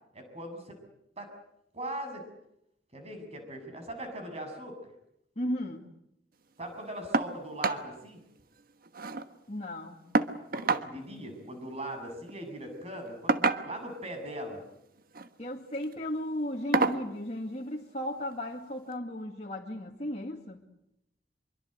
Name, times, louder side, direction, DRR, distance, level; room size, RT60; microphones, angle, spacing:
voice 1, 0.1-0.8 1.2-1.3 1.7-2.2 2.9-4.8 6.6-8.2 10.5-14.6, right 1 dB, 35° right, 6 dB, 7.4 m, -40 dB
voice 2, 5.4-5.8 9.5-10.0 15.4-20.6, left 1 dB, 40° left, -1 dB, 2.2 m, -35 dB
sound 1, 7.1-7.3 7.6-7.8 8.2-8.3 8.6-9.3 10.1-10.9 12.1-12.3 13.3-14.0 15.0-15.3 15.8-15.9 16.7-17.1 18.3-18.4 18.9-19.0, right 3 dB, 55° right, 1.3 m, -28 dB
25.5 x 23.5 x 8.0 m, 0.80 s
head